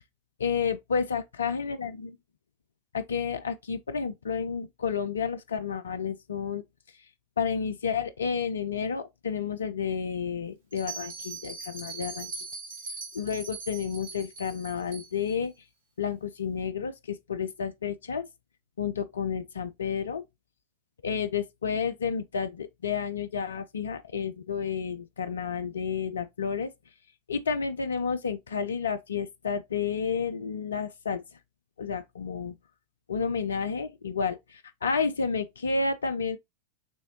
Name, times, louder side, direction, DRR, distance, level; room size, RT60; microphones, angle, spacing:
voice 1, 0.4-2.1 2.9-6.6 6.9-7.1 7.4-12.3 13.1-15.5 16.0-18.3 18.8-20.2 21.0-26.7 27.3-31.4 31.8-32.5 33.1-36.4, left 6 dB, 70° left, 0.4 m, -31 dB
Bell, 10.7-15.3, right 4 dB, 55° right, 1.3 m, -40 dB
6.2 x 3.1 x 2.7 m
figure-of-eight pair, 90°, 0 cm